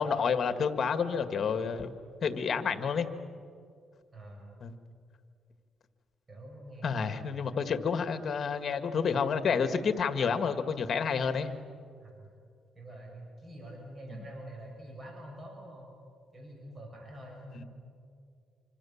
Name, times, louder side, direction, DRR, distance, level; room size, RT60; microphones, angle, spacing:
voice 1, 0.0-2.0 2.2-3.1 4.6-4.8 6.8-11.5 17.5-17.6, left 6 dB, 50° left, 9 dB, 2.0 m, -29 dB
voice 2, 4.1-4.6 6.3-7.5 12.0-12.3 12.8-15.9 16.3-17.7, right 1 dB, 30° right, 0 dB, 7.2 m, -46 dB
26.5 x 26.0 x 7.4 m, 2.3 s
cardioid pair, 90°, 0 cm